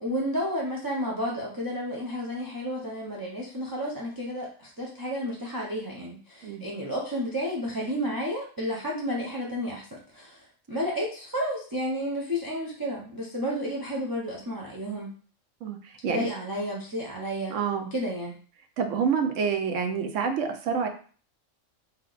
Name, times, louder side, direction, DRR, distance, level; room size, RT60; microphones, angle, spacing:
voice 1, 0.0-15.1 16.1-17.6 17.9-18.4, equal, 25° right, -4 dB, 0.5 m, -31 dB
voice 2, 17.5-17.9 18.8-20.9, right 6 dB, 70° right, 6 dB, 0.9 m, -27 dB
3.4 x 2.8 x 3.9 m, 0.42 s
omnidirectional pair, 1.4 m